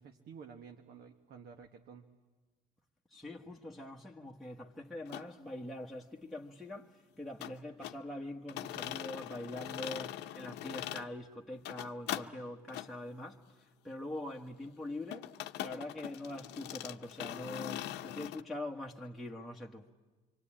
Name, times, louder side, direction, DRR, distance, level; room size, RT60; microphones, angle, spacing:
voice 1, 0.0-2.1, right 6 dB, 70° right, 1.3 m, -52 dB
voice 2, 3.1-19.9, left 1 dB, ahead, 1.3 m, -44 dB
sound 1, 5.1-5.3 7.4-8.0 8.5-11.1 11.5-12.3 12.7-12.9 15.1-18.4, left 13 dB, 80° left, 0.8 m, -42 dB
25.5 x 25.0 x 8.8 m
cardioid pair, 110°, 17 cm